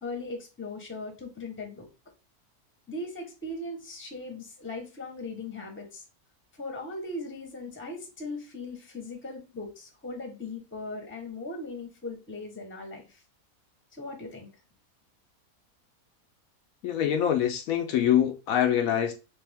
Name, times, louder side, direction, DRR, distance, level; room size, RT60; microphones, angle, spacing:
voice 1, 0.0-1.9 2.9-6.0 6.6-13.2 13.9-14.5, left 2 dB, 10° left, 0.8 m, -39 dB
voice 2, 16.8-19.1, left 10 dB, 75° left, 1.0 m, -24 dB
3.4 x 3.3 x 3.4 m
omnidirectional pair, 1.6 m